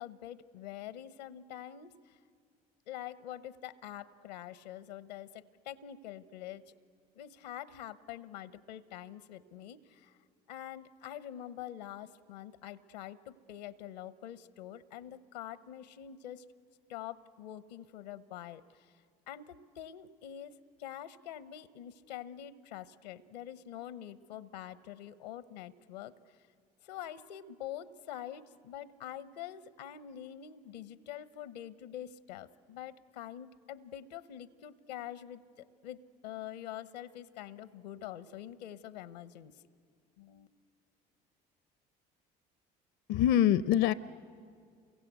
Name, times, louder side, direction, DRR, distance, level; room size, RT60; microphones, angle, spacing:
voice 1, 0.0-2.2 2.9-6.7 7.1-10.2 10.5-16.5 16.9-18.9 19.3-26.1 26.8-39.5 40.2-40.5, left 11 dB, 90° left, 14 dB, 0.8 m, -45 dB
voice 2, 43.1-43.9, left 11 dB, 65° left, 15 dB, 0.6 m, -24 dB
29.0 x 23.0 x 8.1 m, 2.2 s
hypercardioid pair, 65°, 20 cm